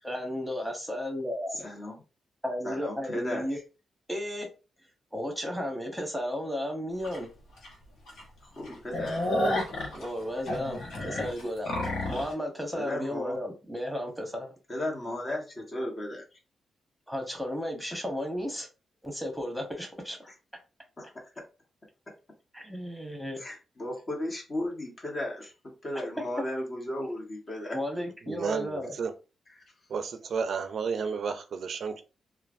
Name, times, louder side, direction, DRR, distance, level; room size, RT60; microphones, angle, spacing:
voice 1, 0.0-1.7 2.4-3.6 4.1-4.5 5.1-7.3 9.9-11.8 12.1-14.5 17.1-18.7 19.0-20.2 22.5-23.4 27.7-28.9, equal, ahead, 1.2 m, -34 dB
voice 2, 1.5-2.0 2.6-3.6 8.4-9.3 12.7-13.4 14.7-16.4 20.2-20.3 21.0-21.4 23.4-27.8, left 1 dB, 40° left, 1.3 m, -35 dB
sound 1, 7.0-7.2 7.6-7.7 8.1-8.2 8.6-12.3, left 1 dB, 80° left, 1.1 m, -31 dB
voice 3, 28.3-29.1 29.9-32.0, right 5 dB, 65° right, 0.4 m, -32 dB
3.1 x 2.3 x 2.5 m
cardioid pair, 60°, 0 cm